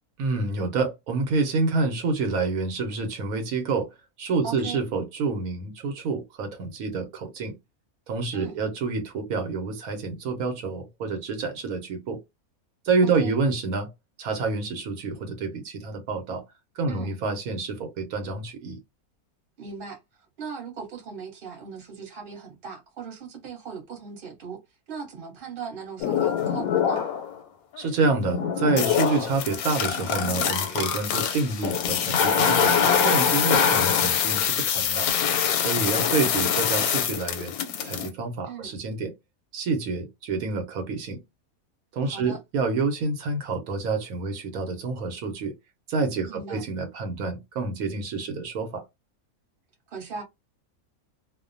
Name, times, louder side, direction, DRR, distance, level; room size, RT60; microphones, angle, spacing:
voice 1, 0.2-3.9 4.2-7.5 8.1-12.2 12.8-13.9 14.2-16.4 16.8-18.8 27.8-32.7 33.0-35.1 35.6-37.5 37.8-39.1 39.5-41.2 41.9-45.5 45.9-48.8, right 4 dB, 85° right, 1.1 m, -28 dB
voice 2, 4.4-4.8 8.3-8.6 13.0-13.4 16.9-17.2 19.6-24.6 24.9-27.0 33.5-33.7 36.0-36.3 38.4-38.7 42.0-42.4 46.2-46.6 49.9-50.2, right 5 dB, 45° right, 1.0 m, -38 dB
sound 1, 26.0-27.3 27.8-38.1, left 7 dB, 90° left, 1.0 m, -24 dB
2.5 x 2.1 x 2.5 m
omnidirectional pair, 1.5 m